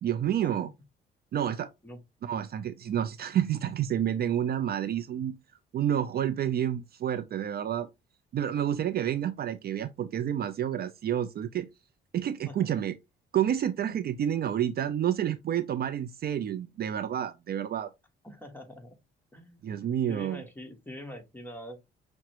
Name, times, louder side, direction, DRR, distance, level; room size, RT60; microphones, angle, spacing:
voice 1, 0.0-0.7 1.3-1.7 2.2-5.3 5.7-7.9 8.3-11.7 12.1-13.0 13.3-17.9 19.6-20.4, right 10 dB, 50° right, 0.4 m, -29 dB
voice 2, 18.2-19.0 19.3-19.8 20.1-21.8, equal, 10° left, 1.2 m, -44 dB
5.9 x 2.2 x 2.9 m
cardioid pair, 90°, 20 cm